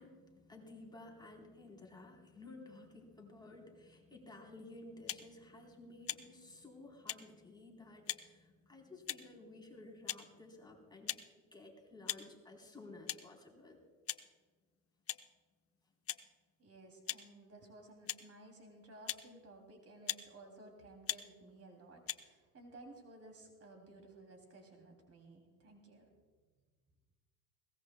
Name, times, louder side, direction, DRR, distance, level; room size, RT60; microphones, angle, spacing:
voice 1, 0.0-11.2 11.5-13.8, left 2 dB, 10° left, 0 dB, 3.7 m, -54 dB
sound 1, 5.1-5.3 6.1-6.2 7.1-7.2 8.1-8.2 9.1-9.3 10.1-10.2 11.1-11.2 12.1-12.2 13.1-13.2 14.1-14.2 15.1-15.2 16.1-16.2 17.1-17.2 18.1-18.2 19.1-19.2 20.1-20.2 21.1-21.2 22.1-22.2, left 11 dB, 35° left, 0.7 m, -39 dB
voice 2, 16.6-26.1, right 2 dB, 35° right, 3 dB, 3.0 m, -56 dB
21.5 x 18.0 x 2.3 m, 1.4 s
hypercardioid pair, 80°, 41 cm